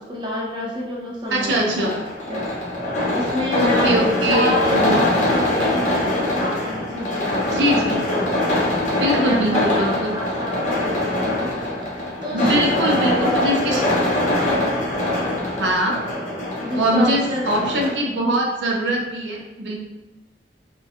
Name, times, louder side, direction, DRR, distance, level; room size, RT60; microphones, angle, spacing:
voice 1, 0.0-2.0 2.3-2.5 3.1-7.4 8.0-8.6 8.9-11.5 11.8-14.0 16.6-17.8, equal, 25° right, -4 dB, 0.5 m, -28 dB
sound 1, 1.3-17.9, left 1 dB, 40° left, 0.5 m, -23 dB
voice 2, 1.3-1.9 3.5-5.0 7.5-8.0 9.0-10.1 12.3-13.8 15.6-15.9 16.7-19.8, right 1 dB, 90° right, 0 dB, 0.5 m, -22 dB
2.3 x 2.2 x 2.7 m, 1.1 s
head